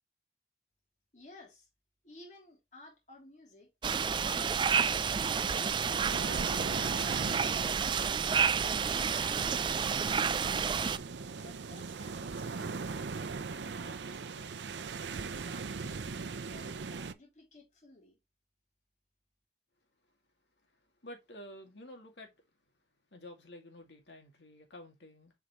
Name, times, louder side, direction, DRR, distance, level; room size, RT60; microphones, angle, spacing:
voice 1, 1.1-1.7 2.0-3.7 4.2-5.8 6.2-8.3 8.8-10.7 11.4-14.7 15.1-18.2, left 2 dB, 45° left, 3.1 m, -55 dB
sound 1, 3.8-11.0, right 6 dB, 25° right, 0.3 m, -30 dB
sound 2, 4.9-17.1, right 4 dB, 85° right, 0.6 m, -40 dB
voice 2, 21.0-22.3 23.1-25.3, left 1 dB, 85° left, 2.3 m, -50 dB
7.8 x 4.8 x 3.0 m
head